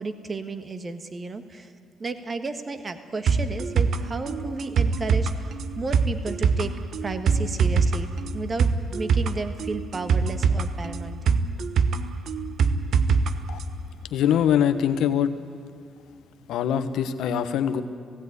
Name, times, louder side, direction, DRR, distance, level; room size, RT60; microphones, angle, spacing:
voice 1, 0.0-1.7 2.0-6.7 7.0-11.2, right 3 dB, 35° right, 9 dB, 1.5 m, -33 dB
sound 1, 3.3-13.3 13.6-13.7, right 5 dB, 65° right, 1.0 m, -23 dB
voice 2, 14.1-15.3 16.5-17.8, left 9 dB, 80° left, 10 dB, 1.1 m, -23 dB
17.0 x 16.5 x 9.7 m, 2.1 s
cardioid pair, 90°, 0 cm